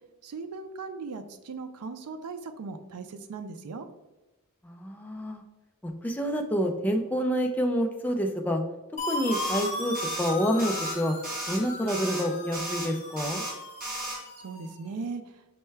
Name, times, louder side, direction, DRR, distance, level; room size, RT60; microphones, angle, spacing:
voice 1, 0.2-3.9 14.4-15.2, right 4 dB, 90° right, 8 dB, 0.4 m, -38 dB
voice 2, 4.6-5.4 5.8-8.6 9.0-11.2 11.5-13.4, equal, 10° left, 3 dB, 0.3 m, -28 dB
sound 1, 9.0-14.8, left 2 dB, 35° left, 0.7 m, -37 dB
sound 2, 9.3-9.7 9.9-10.3 10.6-10.9 11.2-11.6 11.9-12.2 12.5-12.9 13.2-13.5 13.8-14.2, right 1 dB, 40° right, 1.3 m, -34 dB
5.4 x 2.2 x 3.2 m, 1.1 s
head